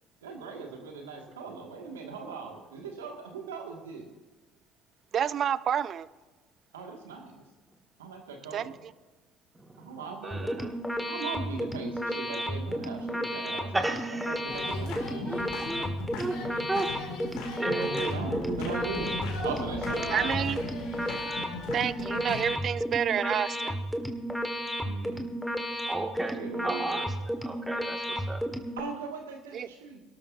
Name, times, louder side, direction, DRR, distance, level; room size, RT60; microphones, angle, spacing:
voice 1, 0.2-4.1 6.7-7.4 8.0-8.8 9.8-14.0 14.3-15.4 17.7-19.2 19.4-20.6 24.8-25.3 26.3-27.0 28.8-30.0, right 4 dB, 90° right, 2 dB, 2.1 m, -39 dB
voice 2, 5.1-6.1 8.5-8.9 20.1-20.7 21.7-23.8 29.5-29.7, right 9 dB, 50° right, 18 dB, 0.5 m, -29 dB
voice 3, 9.6-9.9 10.2-10.8 13.7-14.4 14.8-15.0 15.2-15.9 16.2-16.4 16.7-16.9 17.6-18.6 25.9-27.2 27.4-28.4, right 2 dB, 15° right, 3 dB, 2.2 m, -34 dB
sound 1, 10.3-28.8, equal, 5° left, 1.9 m, -33 dB
sound 2, 14.5-22.6, left 4 dB, 70° left, 2.8 m, -38 dB
22.0 x 12.5 x 2.8 m, 1.3 s
hypercardioid pair, 65°, 0 cm